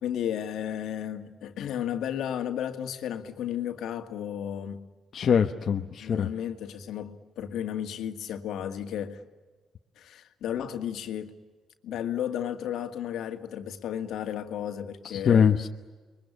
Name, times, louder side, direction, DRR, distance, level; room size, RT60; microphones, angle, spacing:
voice 1, 0.0-4.9 6.0-9.2 10.0-11.3 11.8-15.5, left 10 dB, 80° left, 2.2 m, -33 dB
voice 2, 5.1-6.3 15.0-15.7, left 7 dB, 55° left, 1.1 m, -23 dB
29.5 x 23.0 x 8.7 m
cardioid pair, 90°, 0 cm